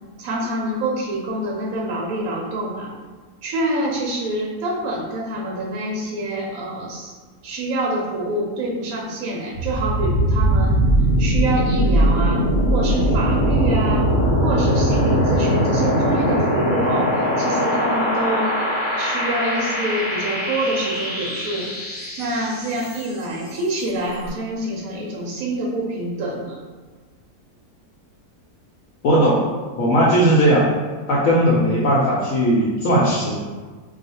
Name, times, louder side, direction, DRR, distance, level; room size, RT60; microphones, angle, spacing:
voice 1, 0.2-2.9 3.4-7.1 7.4-10.8 11.2-14.0 14.4-18.6 19.0-21.7 22.2-26.6, right 1 dB, 70° right, -2 dB, 0.9 m, -26 dB
sound 1, 9.5-23.3, equal, 40° left, 0.8 m, -20 dB
voice 2, 29.0-29.4 29.8-30.7 31.1-33.3, equal, 70° left, -5 dB, 0.9 m, -17 dB
2.4 x 2.4 x 4.0 m, 1.4 s
omnidirectional pair, 1.7 m